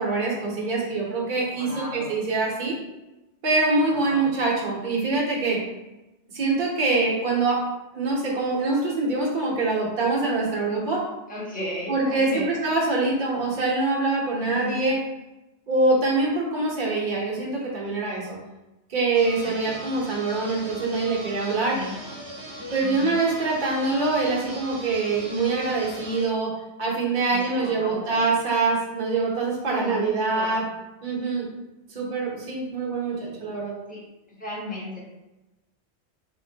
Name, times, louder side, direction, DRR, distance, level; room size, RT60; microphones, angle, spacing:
voice 1, 0.0-2.8 3.4-5.6 6.3-7.6 7.9-11.0 11.9-15.0 15.7-18.4 18.9-21.8 22.7-30.6 31.0-31.5 31.9-33.7, right 3 dB, 50° right, -4 dB, 1.0 m, -24 dB
voice 2, 1.5-2.1 3.9-4.3 11.3-12.6 14.4-14.8 19.4-19.9 21.5-22.0 22.8-23.2 27.3-28.2 29.7-30.7 33.1-33.5 33.9-34.0 34.3-35.0, left 1 dB, 10° left, -6 dB, 1.0 m, -35 dB
sound 1, 19.1-26.3, right 1 dB, 65° right, 1.2 m, -39 dB
4.0 x 2.9 x 2.7 m, 1.0 s
omnidirectional pair, 1.1 m